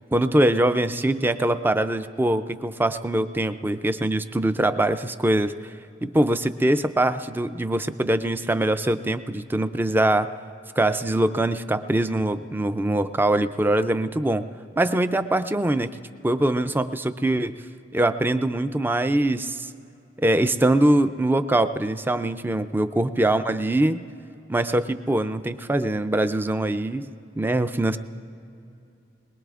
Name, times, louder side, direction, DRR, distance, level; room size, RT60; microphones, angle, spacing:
voice 1, 0.1-5.5 6.0-10.3 10.8-14.4 14.8-15.9 16.2-17.5 17.9-19.7 20.2-24.0 24.5-27.1 27.4-28.0, right 1 dB, 10° right, 11 dB, 0.4 m, -23 dB
22.0 x 21.0 x 2.5 m, 2.6 s
head